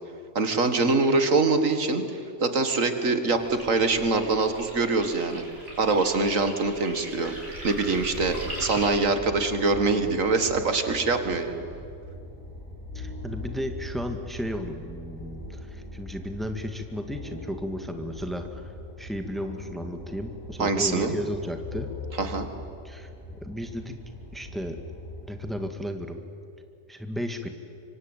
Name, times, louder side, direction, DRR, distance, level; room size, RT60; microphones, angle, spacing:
voice 1, 0.4-2.0 2.4-5.4 5.8-7.3 7.6-11.6 20.6-21.1 22.2-22.5, right 3 dB, 80° right, 8 dB, 2.2 m, -24 dB
sound 1, 3.3-8.9, right 1 dB, 65° right, 7.0 m, -40 dB
sound 2, 7.6-25.5, left 1 dB, 90° left, 5.5 m, -41 dB
voice 2, 12.9-18.6 19.0-21.9 22.8-23.1 23.4-24.0 24.3-24.8 25.3-26.2 26.9-27.5, equal, ahead, 6 dB, 1.8 m, -34 dB
26.0 x 24.0 x 9.1 m, 2.6 s
omnidirectional pair, 1.3 m